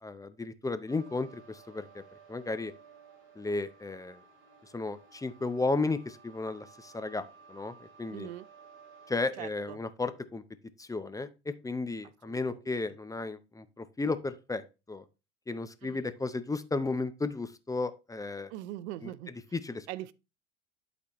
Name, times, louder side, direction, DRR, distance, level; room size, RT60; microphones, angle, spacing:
voice 1, 0.0-2.0 2.3-2.7 3.4-4.2 4.6-8.3 9.1-10.4 10.8-14.6 14.9-15.0 15.5-18.5 19.0-19.1 19.5-19.9, left 3 dB, 10° left, 0.6 m, -34 dB
sound 1, 0.9-9.3, right 6 dB, 35° right, 4.8 m, -56 dB
voice 2, 8.1-8.5 9.4-9.8 12.2-12.6 15.8-16.1 18.5-19.3 19.9-20.1, right 14 dB, 75° right, 0.6 m, -42 dB
11.5 x 4.1 x 3.0 m
hypercardioid pair, 90°, 34 cm